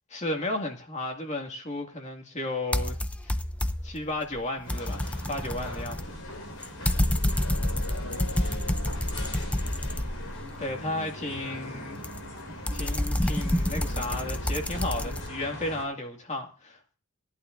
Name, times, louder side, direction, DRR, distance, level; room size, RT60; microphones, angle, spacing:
voice 1, 0.1-3.0 3.2-3.4 3.8-6.2 10.6-12.0 12.7-17.0, left 1 dB, 35° left, 2.1 m, -34 dB
Typing On Keyboard, 2.7-4.0 4.4-10.5 12.0-15.3, left 1 dB, 5° left, 0.5 m, -29 dB
sound 1, 4.6-15.8, left 1 dB, 85° left, 4.7 m, -40 dB
voice 2, 7.6-10.3 10.8-11.2, right 3 dB, 55° right, 2.9 m, -53 dB
18.5 x 11.0 x 2.6 m
head